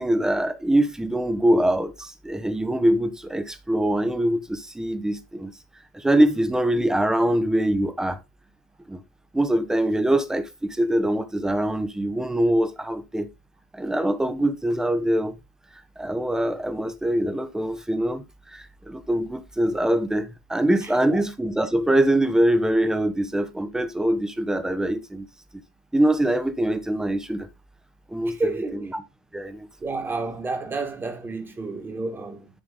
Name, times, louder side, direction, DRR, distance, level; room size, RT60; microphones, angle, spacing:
voice 1, 0.0-5.5 5.9-8.2 8.9-9.0 9.3-13.3 13.7-15.4 16.0-18.2 18.5-25.3 25.9-27.5 28.1-29.0 29.3-29.7, right 1 dB, 5° right, 1.0 m, -23 dB
voice 2, 28.3-28.9 29.8-32.5, right 3 dB, 20° right, 1.9 m, -30 dB
9.7 x 3.4 x 3.8 m
hypercardioid pair, 85°, 10 cm